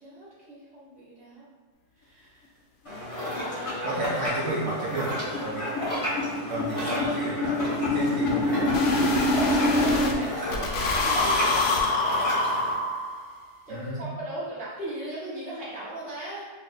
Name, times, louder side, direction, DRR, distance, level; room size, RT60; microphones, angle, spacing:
voice 1, 0.0-1.4 2.0-2.4 3.1-4.0 6.8-7.6 9.5-12.3 13.7-16.5, right 1 dB, 5° right, -10 dB, 0.7 m, -38 dB
sound 1, 2.8-12.7, left 1 dB, 35° left, 0.5 m, -33 dB
sound 2, 3.3-3.4 3.7-3.8 4.1-4.2 4.5-4.7 4.9-10.1 10.5-13.3, left 2 dB, 80° left, 0.6 m, -25 dB
voice 2, 3.8-5.7 6.5-7.5 7.9-8.7 9.8-10.3 13.7-14.1, right 2 dB, 70° right, -5 dB, 0.7 m, -32 dB
2.8 x 2.6 x 3.9 m, 1.3 s
omnidirectional pair, 1.8 m